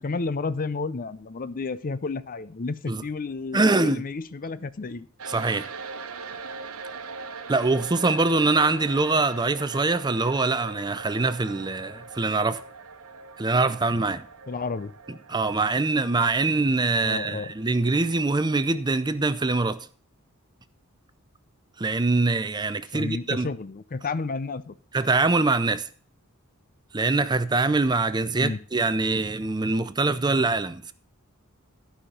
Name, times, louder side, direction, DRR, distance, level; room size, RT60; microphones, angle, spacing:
voice 1, 0.0-5.1 14.5-14.9 17.0-17.5 22.9-24.7 28.4-28.6, left 4 dB, 40° left, 0.5 m, -31 dB
voice 2, 3.5-4.0 5.3-5.7 7.5-12.6 13.4-14.3 15.3-19.9 21.8-23.5 24.9-25.9 26.9-30.9, right 3 dB, 20° right, 0.5 m, -24 dB
sound 1, 5.2-19.8, right 4 dB, 90° right, 1.1 m, -42 dB
12.5 x 5.8 x 6.7 m
head